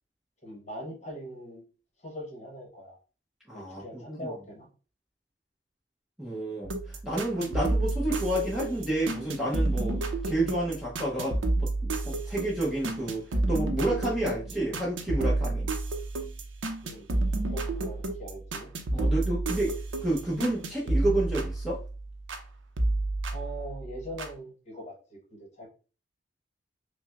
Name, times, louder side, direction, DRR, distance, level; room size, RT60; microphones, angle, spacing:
voice 1, 0.4-1.6 2.0-3.0 3.5-4.7 8.7-8.8 16.8-17.1 17.4-18.7 23.3-25.2 25.5-25.7, equal, 35° left, 1 dB, 1.1 m, -41 dB
voice 2, 3.5-4.3 6.2-15.7 18.9-19.8 20.0-21.8, right 1 dB, ahead, -5 dB, 0.7 m, -30 dB
sound 1, 6.6-22.5 22.8-24.3, right 2 dB, 85° right, 0.5 m, -30 dB
5.7 x 2.1 x 2.4 m, 0.35 s
head